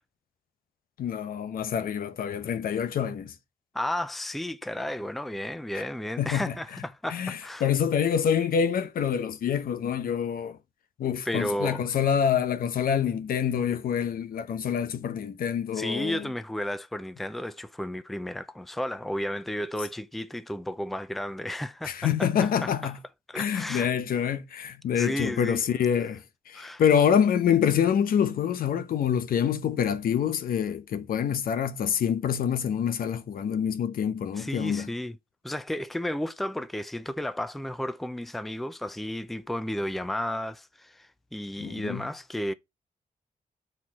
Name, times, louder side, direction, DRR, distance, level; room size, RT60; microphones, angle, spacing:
voice 1, 1.0-3.3 5.7-5.9 6.2-6.5 7.1-10.6 11.0-16.3 21.8-23.0 23.3-34.9 41.6-42.1, left 8 dB, 80° left, 0.9 m, -26 dB
voice 2, 3.7-7.7 11.3-11.8 15.7-22.3 22.6-22.7 23.3-23.9 25.0-25.6 26.5-26.8 34.4-35.2 35.4-42.5, left 1 dB, ahead, 0.4 m, -33 dB
8.2 x 4.6 x 4.2 m
wide cardioid pair, 155°, 15 cm